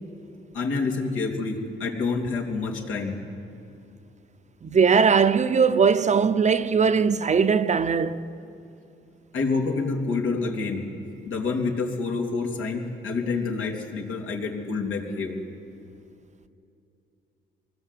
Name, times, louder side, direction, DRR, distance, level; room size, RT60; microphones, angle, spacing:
voice 1, 0.5-3.2 9.3-10.8 11.2-15.4, left 4 dB, 80° left, 3.3 m, -28 dB
voice 2, 4.6-8.2, right 6 dB, 35° right, 0.8 m, -20 dB
24.5 x 19.5 x 8.4 m
cardioid pair, 90°, 20 cm